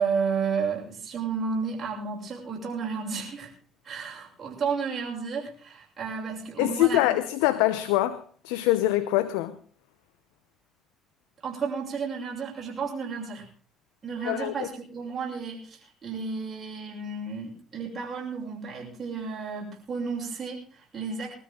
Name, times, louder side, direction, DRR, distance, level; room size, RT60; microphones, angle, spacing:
voice 1, 0.0-3.5 3.8-7.2 11.4-13.5 14.0-21.3, right 5 dB, 35° right, 7.1 m, -32 dB
voice 2, 6.6-9.6 14.2-14.7, left 15 dB, 85° left, 0.8 m, -24 dB
21.0 x 13.5 x 3.8 m
supercardioid pair, 75°, 0 cm